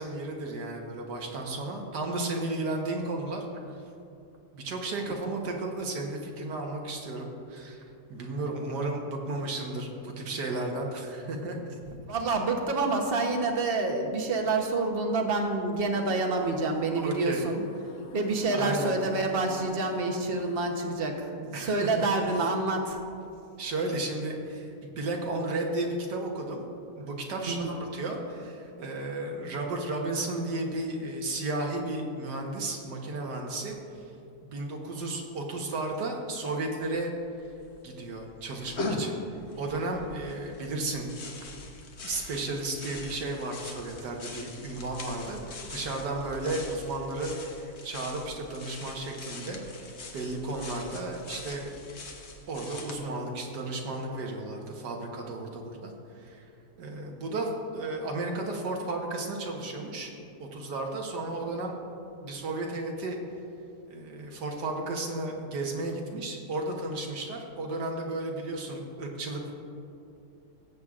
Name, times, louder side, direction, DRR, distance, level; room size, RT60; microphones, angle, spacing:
voice 1, 0.0-3.8 4.5-7.8 8.1-11.6 17.0-17.5 18.5-19.0 21.5-21.9 23.6-26.7 27.0-34.0 34.4-37.1 37.8-41.1 42.0-51.8 52.5-55.9 56.2-56.5 56.8-60.1 60.4-61.8 62.2-63.2 63.9-69.5, right 2 dB, 80° right, 1 dB, 1.8 m, -33 dB
voice 2, 11.9-17.6 18.1-23.0 27.5-27.7, right 3 dB, 40° right, 3 dB, 1.0 m, -28 dB
sound 1, 15.9-20.8, left 4 dB, 80° left, 1.4 m, -50 dB
sound 2, 36.8-36.9 37.1-37.8 38.2-53.0, left 2 dB, 50° left, 1.0 m, -41 dB
18.0 x 8.0 x 2.5 m, 2.6 s
omnidirectional pair, 1.8 m